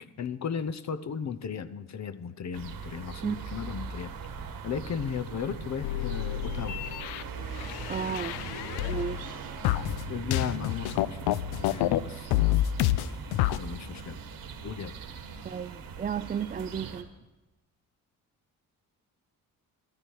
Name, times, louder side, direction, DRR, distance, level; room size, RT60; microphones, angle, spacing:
voice 1, 0.2-4.1 4.6-6.8 10.1-11.2 11.6-12.6 13.6-14.2 14.6-14.9, left 7 dB, 50° left, 0.8 m, -35 dB
sound 1, 2.5-17.0, right 5 dB, 65° right, 1.5 m, -40 dB
sound 2, 5.8-9.3 9.6-12.0 12.3-13.6, left 14 dB, 90° left, 0.5 m, -28 dB
voice 2, 7.9-8.4 8.9-9.6 15.4-17.1, right 7 dB, 25° right, 0.3 m, -33 dB
13.5 x 13.0 x 4.7 m
supercardioid pair, 65°, 37 cm